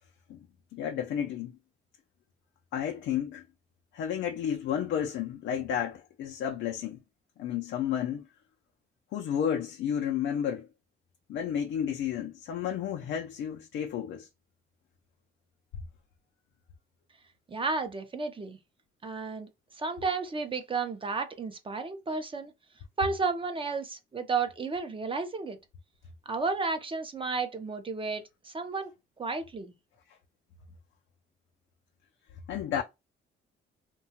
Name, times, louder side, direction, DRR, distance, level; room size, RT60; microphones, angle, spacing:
voice 1, 0.7-1.5 2.7-3.4 3.9-7.0 7.4-8.2 9.1-10.7 11.3-14.3 32.5-32.8, left 9 dB, 75° left, 0.5 m, -31 dB
voice 2, 17.5-18.6 19.0-19.5 19.7-22.5 23.0-25.6 26.3-28.9 29.2-29.7, right 4 dB, 25° right, 0.5 m, -32 dB
2.7 x 2.2 x 2.7 m
cardioid pair, 90°, 20 cm